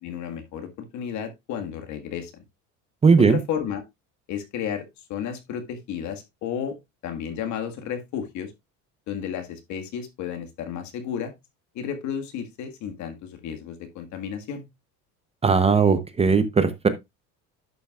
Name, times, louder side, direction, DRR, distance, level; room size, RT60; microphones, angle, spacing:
voice 1, 0.0-2.3 3.2-3.8 4.3-6.8 7.0-8.5 9.1-11.3 11.8-14.7, left 8 dB, 65° left, 1.8 m, -32 dB
voice 2, 3.0-3.4 15.4-16.9, right 5 dB, 20° right, 0.8 m, -18 dB
11.0 x 7.0 x 2.4 m
cardioid pair, 125°, 31 cm